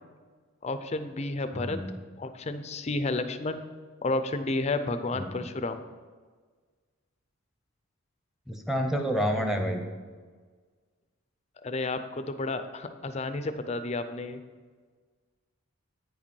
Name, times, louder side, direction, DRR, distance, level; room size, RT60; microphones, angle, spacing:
voice 1, 0.6-1.8 2.2-3.6 4.0-5.8 11.6-14.4, left 2 dB, 30° left, 9 dB, 0.4 m, -31 dB
voice 2, 1.5-1.9 5.1-5.5 8.5-9.8, equal, ahead, 3 dB, 0.7 m, -29 dB
9.1 x 5.2 x 5.4 m, 1.5 s
head